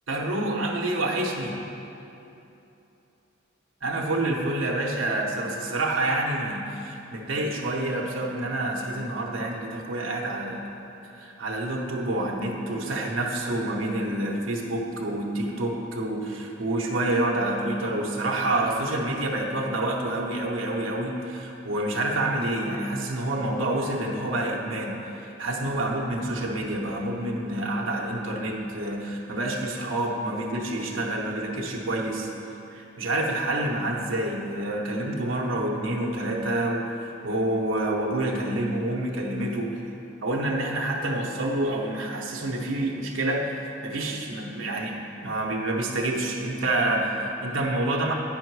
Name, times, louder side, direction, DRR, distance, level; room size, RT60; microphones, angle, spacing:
voice 1, 0.1-1.7 3.8-10.7 11.1-39.8 40.2-48.1, right 1 dB, 65° right, -1 dB, 0.8 m, -28 dB
9.2 x 5.3 x 4.6 m, 2.9 s
head